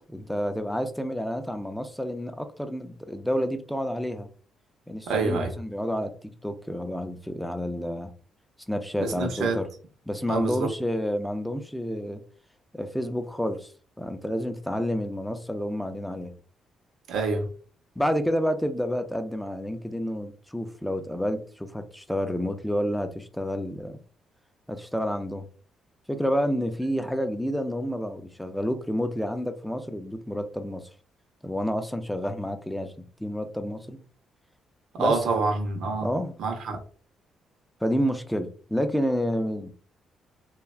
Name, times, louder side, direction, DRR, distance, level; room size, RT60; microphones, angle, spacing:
voice 1, 0.1-4.3 4.9-8.1 8.7-9.7 10.1-12.2 12.7-13.7 14.0-16.3 18.0-24.0 24.7-25.5 26.1-30.8 31.4-32.9 33.2-34.0 35.0-35.5 36.0-36.3 37.8-39.7, equal, 5° left, 0.4 m, -29 dB
voice 2, 5.1-5.6 9.0-9.6 10.3-10.7 17.1-17.5 34.9-36.1 36.4-36.8, right 3 dB, 75° right, 0.7 m, -26 dB
3.1 x 2.3 x 2.3 m
cardioid pair, 90°, 0 cm